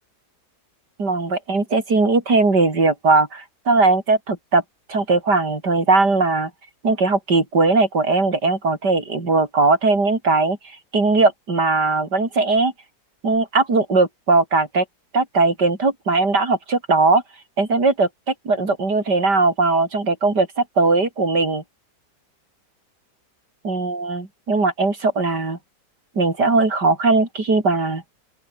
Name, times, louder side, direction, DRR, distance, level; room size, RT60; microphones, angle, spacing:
voice 1, 1.0-4.6 4.9-6.5 6.8-10.6 10.9-12.7 13.2-14.8 15.1-17.2 17.6-21.6 23.6-25.6 26.1-28.0, right 3 dB, 80° right, 5.1 m, -19 dB
open air
omnidirectional pair, 1.8 m